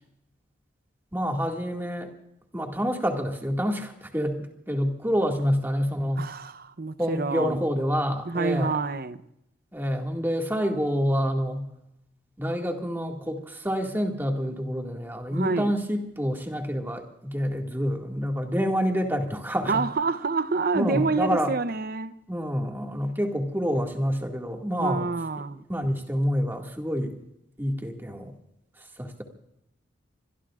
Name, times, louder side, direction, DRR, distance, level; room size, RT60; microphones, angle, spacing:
voice 1, 1.1-2.1 2.5-6.3 7.0-8.7 9.7-11.7 12.4-19.8 20.7-21.5 22.3-25.1 25.7-27.2 27.6-28.3 28.8-29.2, equal, 10° right, 2.1 m, -27 dB
voice 2, 6.2-7.6 8.3-9.2 15.3-15.7 19.7-22.1 24.8-25.6, right 4 dB, 50° right, 0.8 m, -27 dB
26.5 x 22.0 x 2.5 m
head